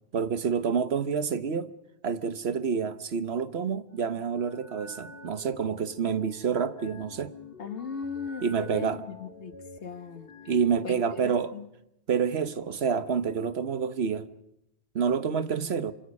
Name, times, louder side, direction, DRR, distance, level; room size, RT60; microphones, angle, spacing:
voice 1, 0.1-1.7 2.0-7.3 8.4-9.0 10.5-11.5 12.1-14.3 14.9-15.9, right 6 dB, 70° right, 1.3 m, -28 dB
sound 1, 3.9-11.3, left 2 dB, 55° left, 1.9 m, -48 dB
voice 2, 7.6-9.5 9.8-10.3 10.8-11.7, left 6 dB, 85° left, 1.7 m, -38 dB
26.0 x 25.5 x 5.4 m
omnidirectional pair, 1.1 m